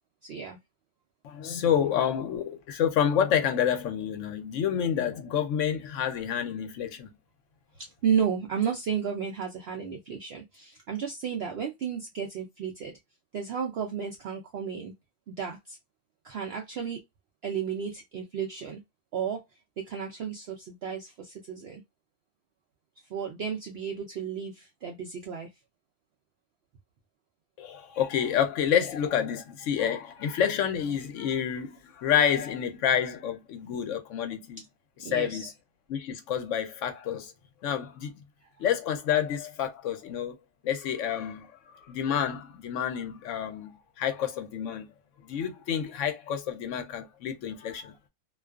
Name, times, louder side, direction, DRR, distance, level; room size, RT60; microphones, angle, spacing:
voice 1, 0.2-0.6 7.8-12.9 13.3-14.9 15.3-15.8 16.2-17.0 17.4-18.8 19.1-19.4 19.8-21.8 23.1-25.5 35.0-35.5, right 7 dB, 85° right, 0.5 m, -33 dB
voice 2, 1.2-7.1 27.6-34.6 35.1-35.5 35.9-37.3 37.6-38.1 38.6-40.3 40.6-41.5 41.7-44.9 45.2-47.9, left 8 dB, 65° left, 0.8 m, -28 dB
2.4 x 2.3 x 2.2 m
omnidirectional pair, 1.6 m